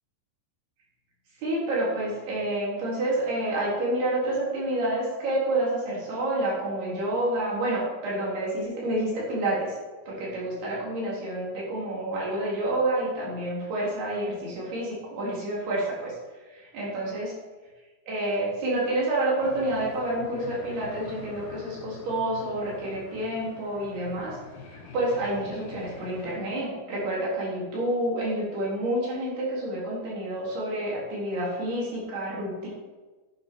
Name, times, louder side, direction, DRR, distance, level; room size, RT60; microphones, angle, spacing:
voice 1, 1.4-9.8 10.1-16.2 16.5-17.3 18.1-24.4 24.9-32.7, right 1 dB, 80° right, -5 dB, 5.5 m, -28 dB
sound 1, 19.4-26.4, left 5 dB, 70° left, 3.3 m, -45 dB
11.0 x 9.8 x 4.6 m, 1.3 s
omnidirectional pair, 4.5 m